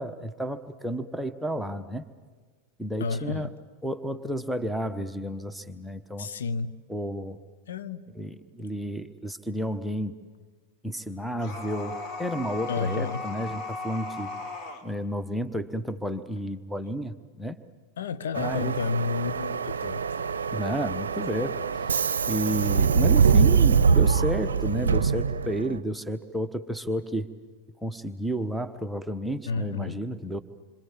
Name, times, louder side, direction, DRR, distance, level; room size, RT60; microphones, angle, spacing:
voice 1, 0.0-2.1 2.8-3.5 3.8-6.3 6.9-7.4 8.2-10.1 10.8-14.4 14.8-17.6 18.4-18.7 20.5-21.6 22.3-27.3 27.8-30.4, equal, ahead, 1.2 m, -31 dB
voice 2, 3.0-3.5 6.2-6.8 7.7-8.1 12.7-13.2 18.0-20.0 29.5-30.0, left 4 dB, 65° left, 1.0 m, -31 dB
sound 1, 11.4-14.8, left 3 dB, 40° left, 3.8 m, -36 dB
Subway metro underground, 18.3-25.8, right 6 dB, 70° right, 0.7 m, -23 dB
27.5 x 25.5 x 7.6 m
figure-of-eight pair, 90°, 0 cm